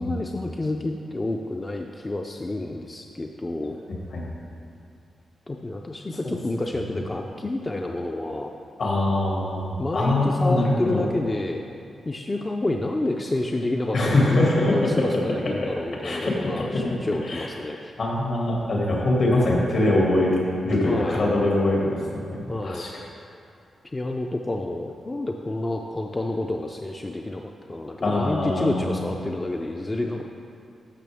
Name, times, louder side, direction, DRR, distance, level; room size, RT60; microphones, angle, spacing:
voice 1, 0.0-3.8 5.5-8.5 9.8-11.6 12.1-17.9 20.9-21.3 22.5-22.9 23.8-30.2, left 2 dB, 20° left, 2 dB, 0.4 m, -29 dB
voice 2, 8.8-11.0 13.9-14.9 16.0-16.6 17.3-17.5 18.0-20.4 20.6-22.9 28.0-29.0, left 1 dB, 65° left, -3 dB, 2.2 m, -23 dB
12.5 x 6.1 x 3.5 m, 2.5 s
wide cardioid pair, 115°, 0 cm